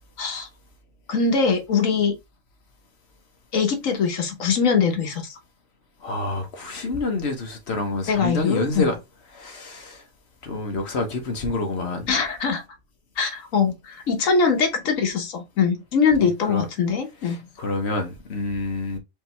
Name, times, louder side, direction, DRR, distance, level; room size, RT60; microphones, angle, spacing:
voice 1, 0.2-0.5 1.1-2.1 3.5-5.3 8.1-8.9 12.1-12.6 13.2-17.5, left 5 dB, 75° left, 1.5 m, -22 dB
voice 2, 6.0-9.0 9.3-10.0 10.4-12.1 16.2-16.6 17.2-19.0, left 2 dB, 55° left, 1.3 m, -28 dB
5.1 x 2.9 x 3.3 m
omnidirectional pair, 1.4 m